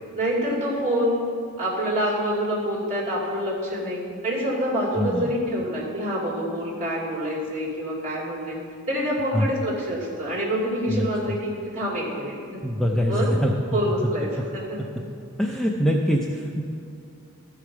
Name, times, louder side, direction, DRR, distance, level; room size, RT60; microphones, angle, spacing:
voice 1, 0.2-1.2 1.6-8.6 8.9-12.6 13.1-13.3 13.7-14.8, equal, 35° right, -5 dB, 2.6 m, -26 dB
voice 2, 4.9-5.3 9.3-9.5 10.9-11.4 12.6-13.5 15.4-16.6, equal, ahead, 0 dB, 0.5 m, -24 dB
13.5 x 4.9 x 5.9 m, 2.4 s
head